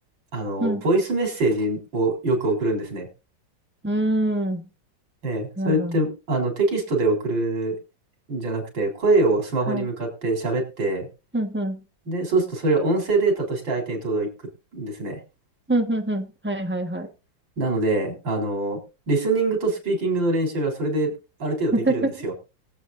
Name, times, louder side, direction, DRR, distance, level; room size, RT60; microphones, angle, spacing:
voice 1, 0.3-3.1 5.2-7.8 8.3-11.1 12.1-14.3 14.7-15.2 17.6-18.8 19.1-21.1 21.4-22.3, right 2 dB, 90° right, 2 dB, 4.4 m, -24 dB
voice 2, 3.8-4.7 5.6-6.0 9.7-9.9 11.3-11.8 15.7-17.1 21.7-22.1, right 1 dB, 5° right, 5 dB, 1.1 m, -25 dB
23.0 x 8.1 x 2.6 m, 0.29 s
omnidirectional pair, 2.0 m